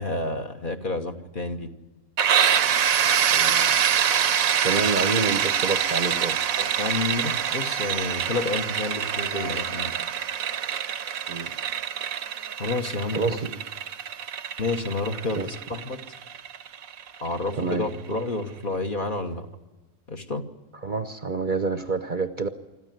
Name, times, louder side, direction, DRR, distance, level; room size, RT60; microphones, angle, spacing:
voice 1, 0.0-1.7 6.5-9.9 12.6-13.4 14.6-16.0 17.2-19.5 20.1-20.4, left 2 dB, 40° left, 4 dB, 1.4 m, -30 dB
sound 1, 2.2-17.8, right 8 dB, 75° right, 1.3 m, -25 dB
voice 2, 3.3-3.8 4.6-6.4 11.3-11.5 13.1-13.6 15.3-15.5 17.5-17.9 20.8-22.5, right 4 dB, 40° right, 9 dB, 0.9 m, -28 dB
25.5 x 14.0 x 9.3 m, 1.2 s
omnidirectional pair, 1.5 m